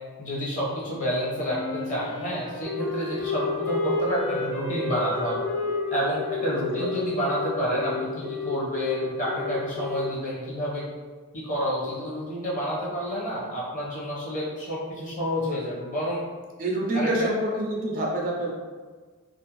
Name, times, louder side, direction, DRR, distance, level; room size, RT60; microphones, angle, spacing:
voice 1, 0.2-5.4 5.9-10.8 11.3-16.2 16.9-17.3, equal, 35° left, -6 dB, 0.8 m, -29 dB
Wind instrument woodwind instrument, 1.4-8.2, left 2 dB, 85° left, 1.3 m, -33 dB
Telephone, 2.6-10.0, left 5 dB, 65° left, 0.9 m, -33 dB
voice 2, 6.5-7.0 16.6-18.5, right 1 dB, 35° right, -2 dB, 0.4 m, -27 dB
2.5 x 2.0 x 2.9 m, 1.4 s
head